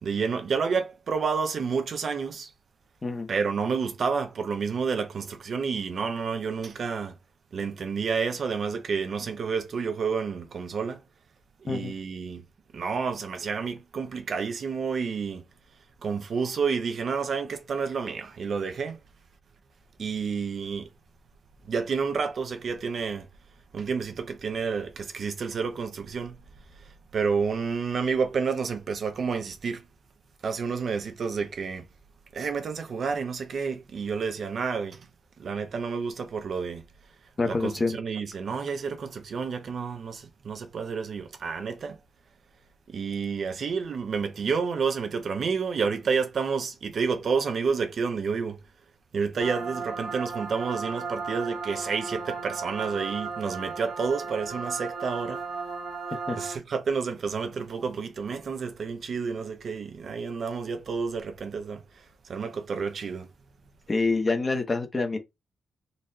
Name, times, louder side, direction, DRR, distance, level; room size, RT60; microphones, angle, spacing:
voice 1, 0.0-2.5 3.3-7.1 7.5-11.0 11.7-12.4 12.7-15.4 16.0-19.0 20.0-20.9 21.7-23.3 23.7-26.4 26.8-29.9 30.4-31.9 32.3-35.1 35.4-36.9 37.5-42.0 42.9-48.6 49.1-55.4 56.4-63.3, right 5 dB, 55° right, 0.6 m, -30 dB
voice 2, 37.4-38.0 56.3-56.4 63.9-65.2, left 3 dB, 25° left, 0.9 m, -26 dB
sound 1, 49.4-56.6, right 4 dB, 75° right, 1.1 m, -35 dB
3.9 x 3.1 x 2.7 m
cardioid pair, 120°, 0 cm